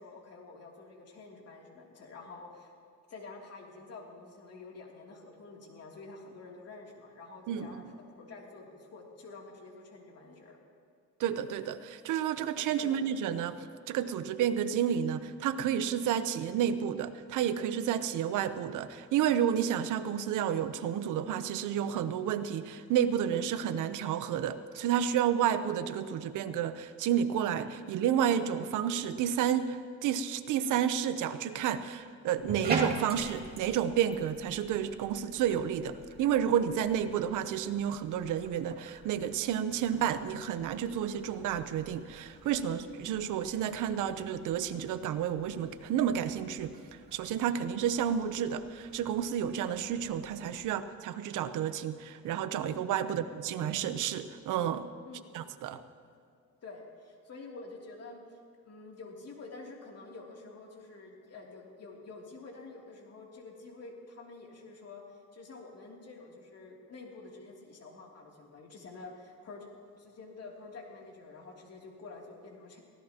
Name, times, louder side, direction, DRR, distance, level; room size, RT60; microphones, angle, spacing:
voice 1, 0.0-2.8 3.1-10.6 12.8-13.0 53.1-53.2 55.0-55.3 56.6-58.4 58.6-69.7 70.0-72.8, left 3 dB, 55° left, -1 dB, 2.9 m, -48 dB
voice 2, 7.5-7.9 11.2-46.7 47.1-54.9 55.3-55.8, right 9 dB, 85° right, 11 dB, 0.8 m, -31 dB
Bathtub (filling or washing), 32.4-50.7, right 3 dB, 30° right, 2.4 m, -44 dB
23.5 x 16.0 x 2.9 m, 2.2 s
cardioid pair, 90°, 30 cm